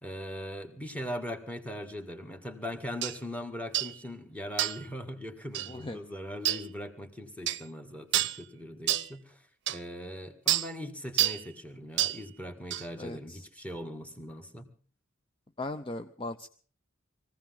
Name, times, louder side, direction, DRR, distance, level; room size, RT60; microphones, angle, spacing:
voice 1, 0.0-9.4 9.7-14.7, equal, 5° left, 8 dB, 1.9 m, -40 dB
sound 1, 3.0-3.2 3.7-3.9 4.6-4.9 5.5-5.7 6.4-6.6 7.5-7.6 8.1-8.4 8.9-9.1 9.7-9.8 10.5-10.7 11.2-11.4 12.0-12.2 12.7-12.9, right 13 dB, 60° right, 0.7 m, -28 dB
voice 2, 5.7-6.0 13.0-13.5 15.6-16.5, left 2 dB, 25° left, 9 dB, 0.6 m, -38 dB
22.5 x 16.0 x 3.8 m, 0.43 s
head